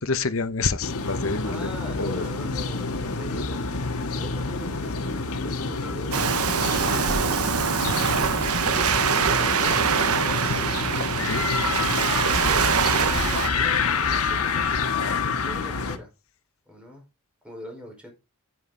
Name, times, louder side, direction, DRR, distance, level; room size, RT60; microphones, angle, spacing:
voice 1, 0.0-1.7 2.0-2.3 3.3-3.4 6.9-7.1 11.2-11.4, left 4 dB, 65° left, 1.1 m, -28 dB
sound 1, 0.8-16.0, left 4 dB, 80° left, 1.5 m, -28 dB
voice 2, 1.4-6.3 9.2-10.7 12.2-12.7 12.9-14.7 15.4-16.1 16.7-17.0 17.4-18.1, left 1 dB, 5° right, 4.8 m, -42 dB
Waves surf, 6.1-13.5, right 6 dB, 80° right, 1.0 m, -24 dB
9.5 x 9.4 x 3.9 m
head